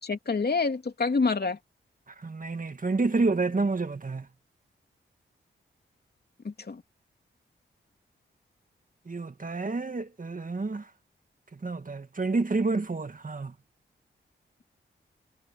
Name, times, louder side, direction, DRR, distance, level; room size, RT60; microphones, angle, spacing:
voice 1, 0.0-1.6 6.4-6.8, left 4 dB, 50° left, 2.9 m, -27 dB
voice 2, 2.2-4.3 9.1-10.8 11.6-13.5, right 3 dB, 40° right, 1.9 m, -29 dB
cardioid pair, 45°, 21 cm